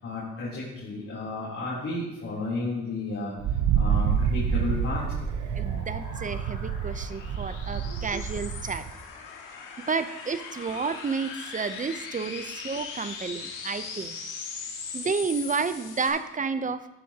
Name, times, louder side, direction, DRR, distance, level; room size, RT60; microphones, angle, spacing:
voice 1, 0.0-3.3 3.7-5.0 7.8-7.9, left 2 dB, 45° left, -7 dB, 3.4 m, -32 dB
Wind, 3.4-8.9, right 7 dB, 70° right, 0.7 m, -28 dB
sound 1, 4.8-16.1, left 5 dB, 80° left, 2.2 m, -40 dB
voice 2, 5.5-8.9 9.8-14.1 14.9-16.9, right 5 dB, 25° right, 12 dB, 0.6 m, -31 dB
11.0 x 10.5 x 2.9 m, 1.0 s
cardioid pair, 90°, 30 cm